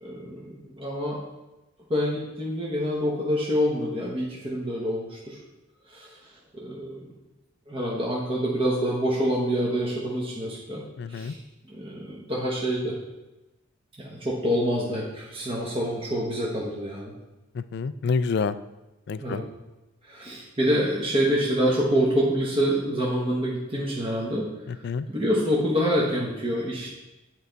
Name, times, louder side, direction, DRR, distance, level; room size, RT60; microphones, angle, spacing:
voice 1, 0.0-1.2 1.9-5.4 5.9-6.2 6.5-7.1 7.7-10.8 11.1-11.4 11.7-13.0 14.0-17.1 19.2-19.4 20.0-24.8 25.1-26.9, equal, 25° right, -4 dB, 1.0 m, -26 dB
voice 2, 11.0-11.4 17.5-18.6 19.1-19.4 24.7-25.1, left 5 dB, 55° left, 14 dB, 0.3 m, -28 dB
9.4 x 4.6 x 3.9 m, 1.0 s
head